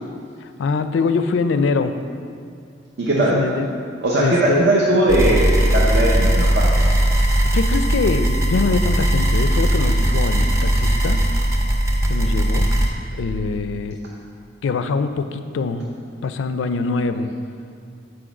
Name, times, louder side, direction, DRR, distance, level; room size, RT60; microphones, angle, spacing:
voice 1, 0.6-1.9 3.1-3.7 4.2-4.7 7.5-11.2 12.1-12.7 13.1-14.0 14.6-15.9 16.2-17.3, left 4 dB, 80° left, 10 dB, 0.4 m, -23 dB
voice 2, 3.0-3.4 4.0-6.8, right 1 dB, 60° right, -5 dB, 0.8 m, -19 dB
sound 1, 5.1-12.9, right 1 dB, 15° right, 0.5 m, -18 dB
6.3 x 4.8 x 5.9 m, 2.4 s
head